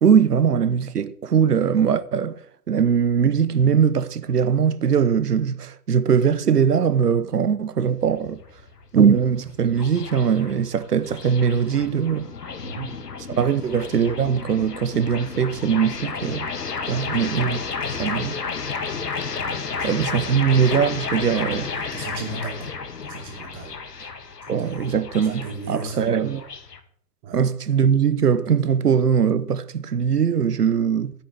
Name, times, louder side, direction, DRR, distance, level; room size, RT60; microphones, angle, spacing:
voice 1, 0.0-2.4 2.7-8.4 8.9-12.3 13.3-16.5 16.9-17.6 18.0-18.4 19.8-21.7 24.5-26.5 27.3-31.1, right 7 dB, 70° right, 0.9 m, -21 dB
sound 1, 7.8-26.8, left 5 dB, 70° left, 1.4 m, -32 dB
voice 2, 16.8-17.5 19.5-20.3 21.9-22.7 23.0-23.7 24.6-24.9 25.3-26.1 27.2-27.4, right 3 dB, 25° right, 2.8 m, -36 dB
13.0 x 8.3 x 3.5 m
figure-of-eight pair, 120°, 49 cm